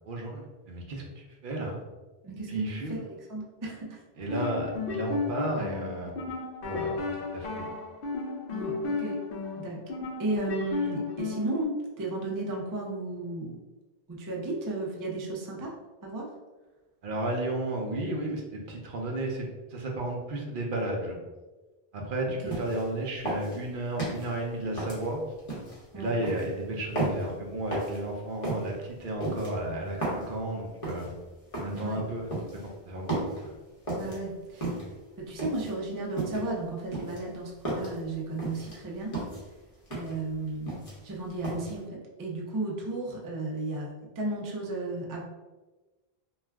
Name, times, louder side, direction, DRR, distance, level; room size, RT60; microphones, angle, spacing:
voice 1, 0.1-1.8 2.5-3.0 4.2-6.2 6.6-7.7 17.0-21.2 21.9-25.2 25.9-31.1 31.6-32.3 32.6-33.2 33.4-33.5, right 1 dB, 60° right, 0 dB, 0.7 m, -33 dB
voice 2, 2.2-2.6 2.9-4.0 8.5-9.2 9.6-9.8 10.2-13.5 14.1-15.7 16.0-16.3 22.3-22.5 25.9-26.1 31.7-32.0 33.9-34.7 35.3-39.1 39.9-40.7 41.0-41.9 42.2-43.9 44.2-45.2, right 2 dB, 35° right, -2 dB, 0.3 m, -34 dB
sound 1, 4.2-11.6, left 4 dB, 65° left, 0.8 m, -34 dB
sound 2, 22.5-22.9 23.3-24.3 24.8-25.8 26.2-26.5 27.0-27.3 27.7-28.0 28.4-28.7 29.2-30.3 30.8-31.1 31.5-31.8 32.3-32.7 33.1-33.4 33.9-34.2 34.6-35.0 35.4-35.7 36.2-36.5 36.9-38.0 38.4-38.8 39.1-39.4 39.9-40.2 40.5-41.1 41.4-41.7, right 2 dB, 35° left, 0.9 m, -33 dB
2.4 x 2.3 x 3.3 m, 1.2 s
omnidirectional pair, 1.0 m